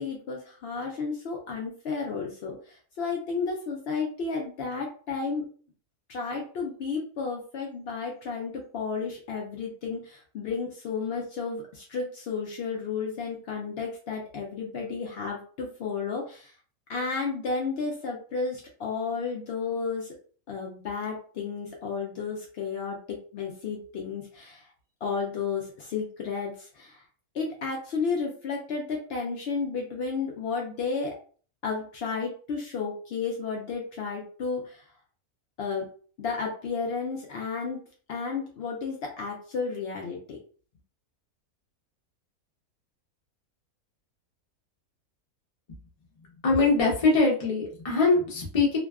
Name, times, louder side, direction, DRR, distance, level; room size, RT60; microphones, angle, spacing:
voice 1, 0.0-5.4 6.1-16.5 16.9-20.1 20.5-24.7 25.0-27.0 27.3-31.1 31.6-34.9 35.6-35.9 36.2-37.8 38.1-40.4, left 5 dB, 90° left, 0 dB, 0.5 m, -32 dB
voice 2, 46.4-48.8, left 3 dB, 40° left, -1 dB, 0.5 m, -22 dB
2.6 x 2.2 x 2.3 m, 0.43 s
omnidirectional pair, 1.6 m